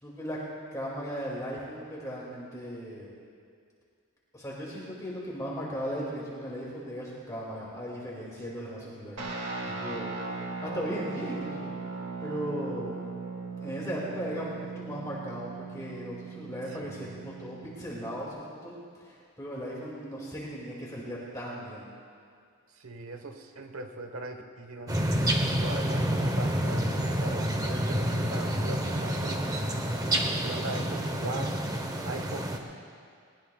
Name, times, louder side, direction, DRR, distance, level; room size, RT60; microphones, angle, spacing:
voice 1, 0.0-0.4 0.7-3.1 4.3-9.2 9.8-11.7 12.2-12.9 13.6-21.9, equal, 15° left, -5 dB, 2.2 m, -37 dB
voice 2, 8.6-9.1 9.6-9.9 16.8-17.0 22.7-25.1 25.6-29.8 30.4-31.6 32.1-32.5, right 2 dB, 70° right, 6 dB, 1.1 m, -40 dB
Guitar, 9.2-18.3, right 4 dB, 90° right, 2.1 m, -38 dB
sound 1, 24.9-32.6, equal, 15° right, 0.9 m, -28 dB
20.5 x 19.5 x 2.3 m, 2.2 s
head